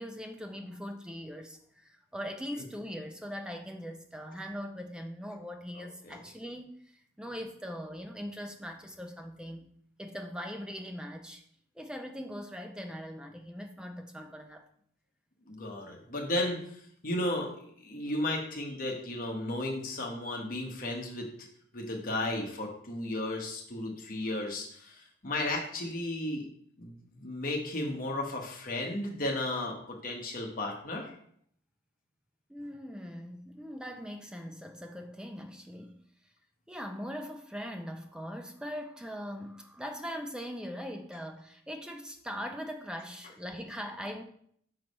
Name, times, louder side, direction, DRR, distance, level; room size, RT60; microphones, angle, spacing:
voice 1, 0.0-9.7 10.0-11.4 11.8-14.6 32.5-36.0 36.7-44.2, equal, 5° right, 4 dB, 0.5 m, -41 dB
voice 2, 5.8-6.2 15.5-21.3 21.7-26.4 26.8-26.9 27.2-31.1, left 1 dB, 45° left, 0 dB, 1.1 m, -34 dB
5.8 x 3.2 x 5.3 m, 0.66 s
head